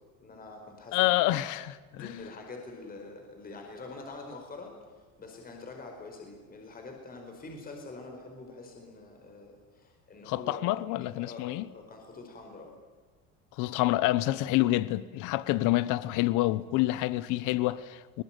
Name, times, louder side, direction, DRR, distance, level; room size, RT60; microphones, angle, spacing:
voice 1, 0.2-1.1 1.9-10.6 11.2-12.7, left 3 dB, 30° left, 4.9 m, -45 dB
voice 2, 0.9-2.1 10.3-11.7 13.6-18.2, left 17 dB, 70° left, 1.0 m, -27 dB
22.5 x 20.5 x 9.1 m
cardioid pair, 125°, 32 cm